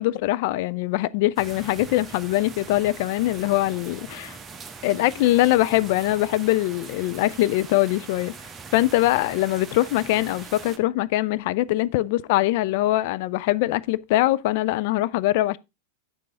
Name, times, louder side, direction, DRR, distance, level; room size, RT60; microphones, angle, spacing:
voice 1, 0.0-4.4 4.8-8.3 8.7-15.6, left 16 dB, 50° left, 0.4 m, -22 dB
sound 1, 1.4-10.8, right 5 dB, 20° right, 0.9 m, -41 dB
8.7 x 6.6 x 3.7 m
figure-of-eight pair, 90°, 0 cm